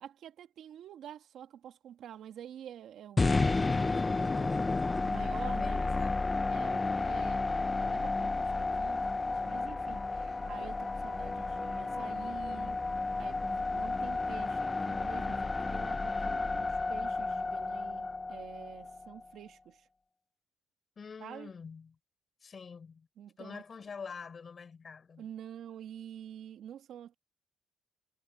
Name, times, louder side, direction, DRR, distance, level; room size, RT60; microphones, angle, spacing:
voice 1, 0.0-4.7 5.0-5.8 6.5-12.8 13.2-19.9 21.2-21.5 23.2-23.6 25.2-27.2, right 10 dB, 75° right, 2.0 m, -48 dB
sound 1, 3.2-19.3, left 3 dB, 25° left, 0.6 m, -32 dB
voice 2, 5.5-7.1 10.6-10.7 21.0-22.0 22.4-23.1 23.4-25.3, left 5 dB, 40° left, 4.1 m, -46 dB
cardioid pair, 90°, 0 cm